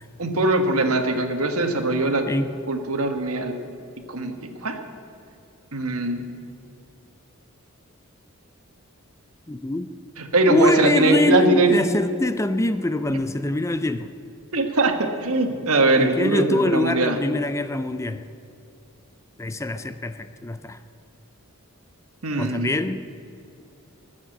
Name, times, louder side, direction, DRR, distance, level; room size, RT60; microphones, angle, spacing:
voice 1, 0.2-2.3 2.7-3.6 4.1-4.8 5.7-6.2 10.2-11.7 13.1-13.2 14.5-17.2 22.2-22.7, right 2 dB, 70° right, 6 dB, 1.5 m, -21 dB
voice 2, 9.5-9.9 10.5-14.1 16.0-18.2 19.4-20.8 22.4-23.0, left 1 dB, 15° left, 11 dB, 0.4 m, -24 dB
21.0 x 7.3 x 7.9 m, 2.5 s
head